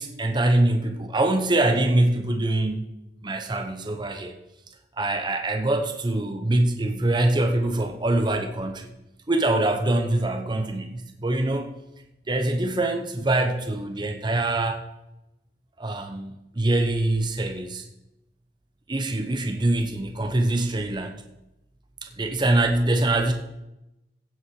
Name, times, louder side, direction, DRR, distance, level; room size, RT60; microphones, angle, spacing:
voice 1, 0.0-2.9 3.2-4.4 5.0-8.9 9.3-11.7 12.3-14.8 15.8-17.9 18.9-21.2 22.0-23.3, right 2 dB, 25° right, 5 dB, 0.8 m, -24 dB
16.0 x 6.1 x 4.7 m, 0.92 s
head